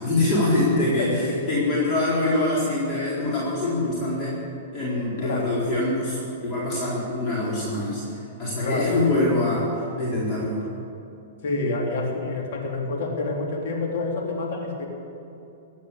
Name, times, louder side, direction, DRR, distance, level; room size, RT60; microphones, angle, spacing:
voice 1, 0.0-4.4 4.7-6.2 6.4-9.7 10.0-10.6, left 2 dB, 30° left, -7 dB, 4.3 m, -24 dB
voice 2, 0.8-1.5 5.2-5.6 8.6-9.0 11.4-14.9, left 3 dB, 65° left, 0 dB, 3.1 m, -28 dB
16.0 x 9.2 x 8.5 m, 2.8 s
hypercardioid pair, 125°, 0 cm